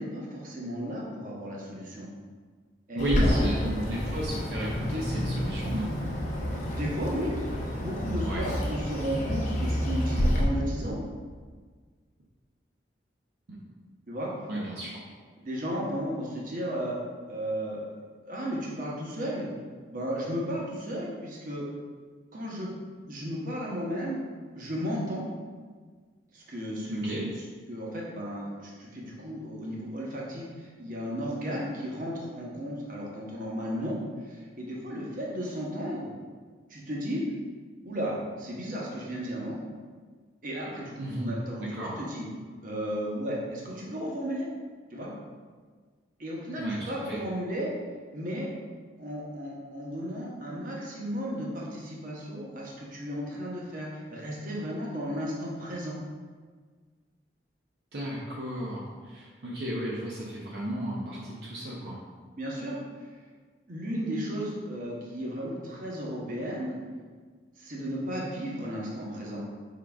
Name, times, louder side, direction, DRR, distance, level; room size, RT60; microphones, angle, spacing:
voice 1, 0.0-2.1 2.9-3.9 6.7-7.3 7.6-11.0 14.1-14.3 15.4-17.0 17.3-18.0 18.3-19.5 19.9-21.6 22.3-22.7 23.0-24.2 24.5-25.2 26.3-27.1 27.7-34.0 34.2-36.1 36.7-37.2 37.8-39.6 40.4-41.6 42.0-42.3 42.6-44.5 44.9-45.1 46.2-47.7 48.1-48.5 49.0-56.0 62.4-62.8 63.7-66.8 67.6-69.4, equal, 50° right, -3 dB, 0.8 m, -34 dB
voice 2, 2.9-5.9 8.2-8.5 13.5-13.6 14.5-15.0 26.9-27.3 41.0-42.0 46.6-47.2 57.9-62.0, right 1 dB, 70° right, -5 dB, 0.6 m, -33 dB
Bird, 3.0-10.4, equal, 45° left, 0.6 m, -29 dB
4.6 x 3.7 x 2.3 m, 1.5 s
head